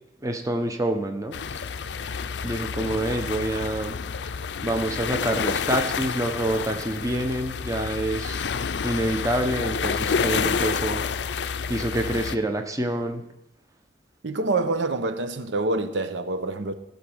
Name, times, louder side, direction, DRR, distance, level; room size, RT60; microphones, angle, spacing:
voice 1, 0.2-1.6 2.4-4.0 4.6-8.4 8.8-11.0 11.7-13.2, right 1 dB, 20° right, 1.0 m, -27 dB
sound 1, 1.3-12.4, left 6 dB, 70° left, 0.5 m, -29 dB
voice 2, 14.2-16.7, right 2 dB, 80° right, 0.8 m, -26 dB
15.5 x 5.4 x 6.3 m
head